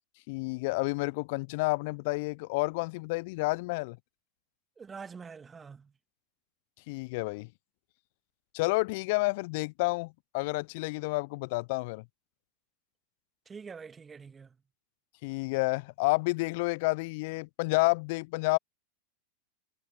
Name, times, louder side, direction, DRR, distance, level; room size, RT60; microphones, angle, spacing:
voice 1, 0.3-4.0 6.9-7.5 8.5-12.0 15.2-18.6, left 25 dB, 55° left, 0.6 m, -30 dB
voice 2, 4.8-5.9 13.5-14.6, right 5 dB, 20° right, 2.5 m, -45 dB
figure-of-eight pair, 85°, 0 cm